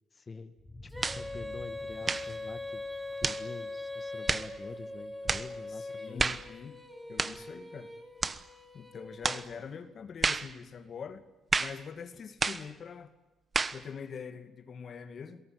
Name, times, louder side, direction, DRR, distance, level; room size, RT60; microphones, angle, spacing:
voice 1, 0.1-0.5 1.1-2.8 3.2-6.4, left 4 dB, 30° left, 8 dB, 1.7 m, -46 dB
sound 1, 0.6-5.2, left 1 dB, 15° left, 5.1 m, -51 dB
Female singing, 0.9-9.7, left 2 dB, 10° right, 4.6 m, -42 dB
sound 2, 1.0-1.3 2.0-2.3 3.2-3.5 4.3-4.5 5.3-5.5 6.2-6.5 7.2-7.4 8.2-8.4 9.2-9.5 10.2-10.5 11.5-11.8 12.4-12.7 13.5-13.8, right 4 dB, 30° right, 1.2 m, -30 dB
voice 2, 5.7-6.8 7.1-8.0 8.7-11.2 11.5-13.1 13.7-15.4, left 6 dB, 50° left, 9 dB, 2.3 m, -44 dB
27.5 x 18.0 x 9.6 m, 1.1 s
cardioid pair, 90°, 0 cm